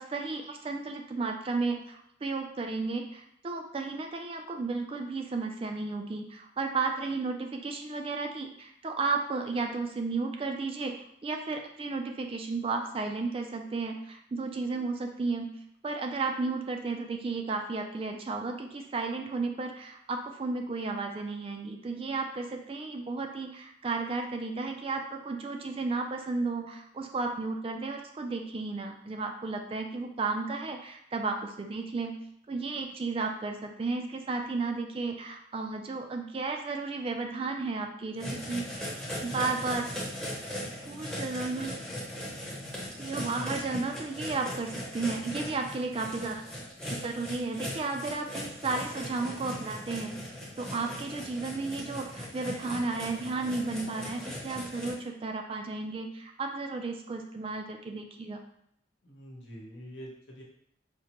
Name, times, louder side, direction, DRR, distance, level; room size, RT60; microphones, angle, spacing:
voice 1, 0.0-10.9 11.2-15.5 15.8-32.2 32.5-38.9 39.2-39.9 40.8-41.8 43.0-46.4 47.0-58.4, right 3 dB, 30° right, 4 dB, 0.3 m, -33 dB
sound 1, 38.2-54.9, equal, 5° left, 0.7 m, -39 dB
voice 2, 59.0-60.4, equal, 75° left, -3 dB, 1.0 m, -45 dB
4.9 x 2.1 x 2.9 m, 0.71 s
head